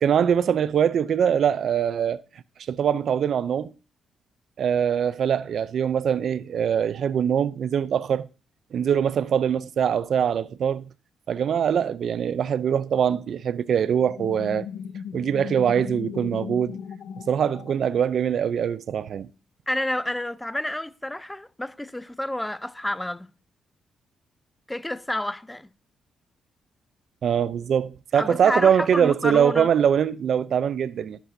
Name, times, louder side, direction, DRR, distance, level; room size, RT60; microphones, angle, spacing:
voice 1, 0.0-2.2 2.7-3.7 4.6-8.3 8.7-10.9 11.3-14.7 15.1-16.8 17.3-19.3 27.2-31.2, right 8 dB, 65° right, 0.5 m, -23 dB
sound 1, 14.0-18.4, left 7 dB, 85° left, 0.9 m, -37 dB
voice 2, 19.7-23.3 24.7-25.7 28.1-29.7, left 1 dB, 10° left, 0.6 m, -29 dB
22.0 x 8.2 x 2.7 m
cardioid pair, 90°, 0 cm